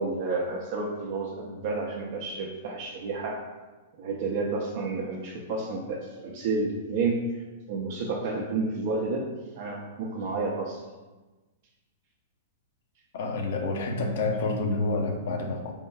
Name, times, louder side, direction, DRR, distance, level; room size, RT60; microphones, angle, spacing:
voice 1, 0.0-3.5 4.0-7.4 7.7-10.8, right 3 dB, 55° right, -2 dB, 0.5 m, -30 dB
voice 2, 13.1-15.7, left 2 dB, 65° left, 2 dB, 0.7 m, -28 dB
4.4 x 3.5 x 2.3 m, 1.2 s
hypercardioid pair, 150°, 0 cm